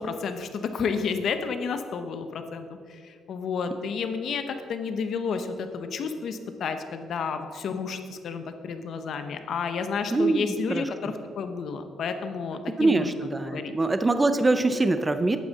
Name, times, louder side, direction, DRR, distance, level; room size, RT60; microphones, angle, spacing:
voice 1, 0.0-13.7, left 5 dB, 55° left, 8 dB, 0.8 m, -31 dB
voice 2, 10.1-11.1 12.8-15.4, right 2 dB, 15° right, 9 dB, 0.4 m, -24 dB
11.0 x 8.7 x 4.1 m, 2.1 s
cardioid pair, 155°, 0 cm